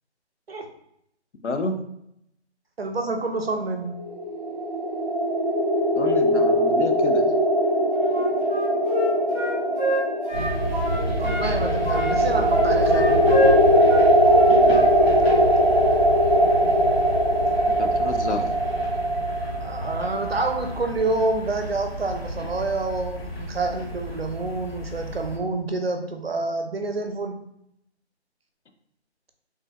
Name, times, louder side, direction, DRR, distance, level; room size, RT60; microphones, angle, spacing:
voice 1, 1.4-1.8 6.0-7.3 17.8-18.5, left 3 dB, 80° left, 6 dB, 0.7 m, -29 dB
voice 2, 2.8-4.0 11.2-13.1 19.6-27.4, right 3 dB, 60° right, 5 dB, 0.6 m, -28 dB
sound 1, 3.9-20.7, equal, 40° right, 0.9 m, -21 dB
Wind instrument woodwind instrument, 8.1-11.5 11.8-14.9 15.2-15.4, equal, 40° left, 1.1 m, -28 dB
sound 2, 10.3-25.4, equal, 60° left, 1.2 m, -31 dB
3.2 x 2.1 x 3.4 m, 0.78 s
figure-of-eight pair, 180°, 34 cm